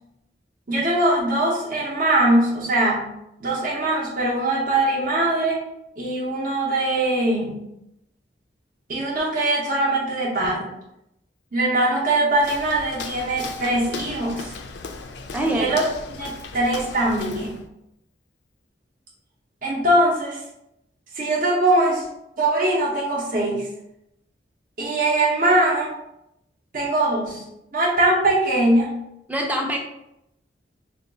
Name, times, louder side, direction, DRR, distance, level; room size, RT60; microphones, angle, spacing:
voice 1, 0.7-3.1 3.4-5.6 6.0-7.6 8.9-10.7 11.5-14.5 15.5-15.9 16.2-17.5 19.6-20.4 21.1-22.0 22.4-23.7 24.8-25.9 26.7-27.4 27.7-28.9, right 1 dB, 50° right, -5 dB, 0.7 m, -21 dB
Walk footsteps, 12.4-17.7, left 4 dB, 65° left, 0.4 m, -37 dB
voice 2, 15.3-15.7 29.3-29.8, right 1 dB, 10° right, 0 dB, 0.4 m, -24 dB
2.8 x 2.3 x 3.8 m, 0.82 s
head